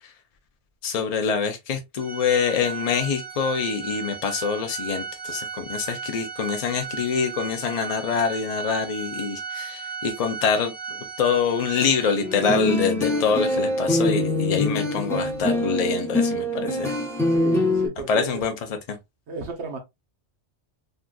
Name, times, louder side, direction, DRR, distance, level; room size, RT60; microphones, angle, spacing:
voice 1, 0.8-16.9 18.1-18.5 18.9-19.0, left 6 dB, 60° left, 0.4 m, -25 dB
Organ, 2.0-12.6, right 6 dB, 50° right, 1.4 m, -35 dB
sound 1, 12.2-17.9, left 1 dB, 5° left, 0.7 m, -24 dB
voice 2, 17.2-18.4 19.3-19.8, right 4 dB, 70° right, 1.1 m, -33 dB
3.6 x 2.4 x 2.2 m
omnidirectional pair, 1.2 m